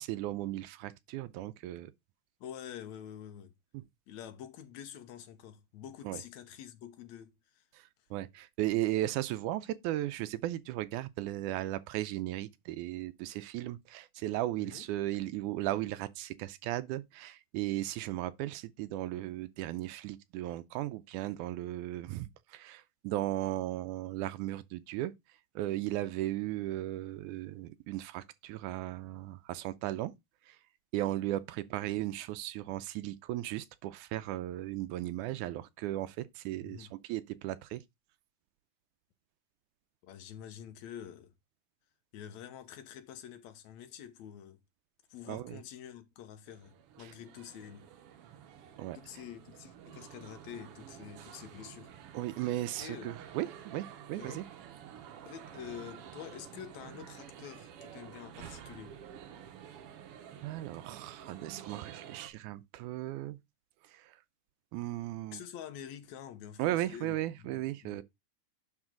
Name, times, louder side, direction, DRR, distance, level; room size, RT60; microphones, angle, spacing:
voice 1, 0.0-1.9 3.7-3.8 6.0-6.2 7.7-25.1 25.6-30.1 30.5-30.6 30.9-37.8 45.3-45.6 47.0-47.1 48.8-49.0 52.1-54.5 60.4-63.4 63.8-64.2 64.7-65.4 66.6-68.0, right 15 dB, 85° right, 2.0 m, -36 dB
voice 2, 2.4-3.5 4.1-7.6 14.6-14.9 36.6-36.9 40.0-41.3 42.1-44.6 45.1-47.9 48.9-51.9 52.8-53.2 54.1-54.4 55.2-59.0 65.3-67.5 67.8-68.0, left 9 dB, 70° left, 2.2 m, -47 dB
sound 1, 46.5-62.3, right 9 dB, 65° right, 1.5 m, -50 dB
10.5 x 4.1 x 3.7 m
omnidirectional pair, 3.5 m